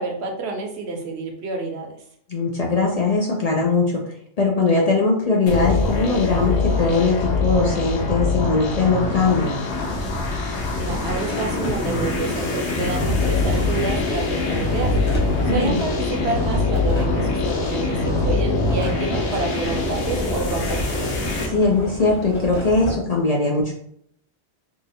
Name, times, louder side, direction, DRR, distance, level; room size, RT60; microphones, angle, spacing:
voice 1, 0.0-1.9 10.8-14.9 15.4-21.0, right 3 dB, 75° right, 2 dB, 1.0 m, -29 dB
voice 2, 2.3-4.0 4.4-9.5 15.4-15.8 21.4-23.7, left 3 dB, 50° left, -1 dB, 0.5 m, -20 dB
sound 1, 5.5-21.5, left 3 dB, 80° left, 1.1 m, -23 dB
sound 2, 11.1-23.0, left 1 dB, 30° left, 0.9 m, -32 dB
2.8 x 2.5 x 4.1 m, 0.69 s
omnidirectional pair, 1.1 m